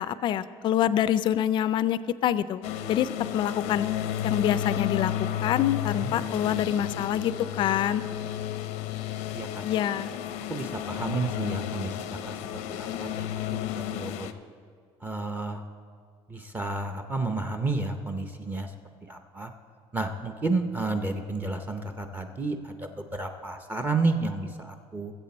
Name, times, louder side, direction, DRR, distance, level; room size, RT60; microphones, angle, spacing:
voice 1, 0.0-2.6 2.9-3.9 4.2-5.1 5.4-8.0 9.6-10.1, left 11 dB, 45° left, 15 dB, 0.4 m, -26 dB
sound 1, 2.6-14.3, left 11 dB, 90° left, 0.7 m, -32 dB
voice 2, 6.4-7.2 9.3-9.6 10.5-14.3 15.0-15.6 16.3-18.7 19.1-19.5 19.9-25.1, right 3 dB, 15° right, 6 dB, 0.6 m, -32 dB
20.0 x 7.8 x 4.2 m, 2.1 s
cardioid pair, 160°, 11 cm